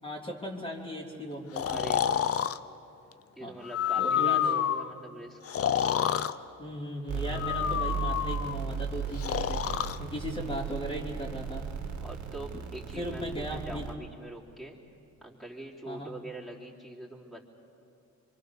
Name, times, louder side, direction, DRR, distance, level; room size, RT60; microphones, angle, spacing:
voice 1, 0.0-1.8 3.4-3.6 3.9-4.5 6.6-9.6 10.0-11.7 12.5-12.6 12.9-13.9 15.8-16.1, equal, 15° left, -3 dB, 3.4 m, -37 dB
Breathing, 1.6-2.6 3.6-4.9 5.5-6.3 7.3-8.5 9.2-10.0, left 9 dB, 50° left, 0.8 m, -28 dB
voice 2, 1.7-2.2 3.4-5.6 12.0-14.8 15.2-17.4, right 1 dB, ahead, -4 dB, 3.7 m, -43 dB
sound 1, 7.1-13.9, right 6 dB, 70° right, 2.5 m, -36 dB
26.5 x 24.0 x 6.8 m, 2.6 s
cardioid pair, 90°, 30 cm